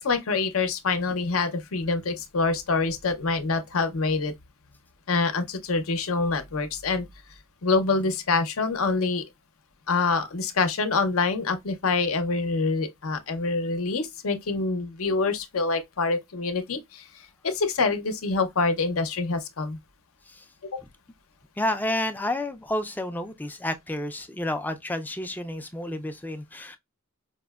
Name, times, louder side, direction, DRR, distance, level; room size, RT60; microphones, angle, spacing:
voice 1, 0.0-4.3 5.1-7.1 7.6-9.2 9.9-17.1 17.4-19.8 20.6-20.8, left 4 dB, 70° left, 0.7 m, -26 dB
voice 2, 21.6-26.8, left 1 dB, 10° left, 0.3 m, -30 dB
5.0 x 2.1 x 2.2 m
head